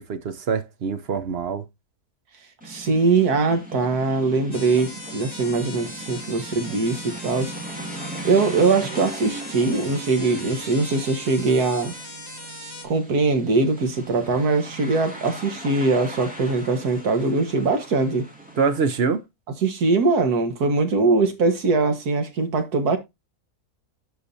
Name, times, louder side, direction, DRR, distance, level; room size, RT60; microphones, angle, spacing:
voice 1, 0.0-1.6 18.6-19.2, right 5 dB, 50° right, 0.9 m, -24 dB
sound 1, 2.6-19.1, right 2 dB, 5° right, 2.6 m, -39 dB
voice 2, 2.6-7.5 8.2-11.9 12.8-18.3 19.6-23.0, right 3 dB, 75° right, 1.9 m, -22 dB
sound 2, 4.5-12.9, left 2 dB, 15° left, 1.4 m, -39 dB
11.5 x 4.9 x 2.6 m
omnidirectional pair, 1.6 m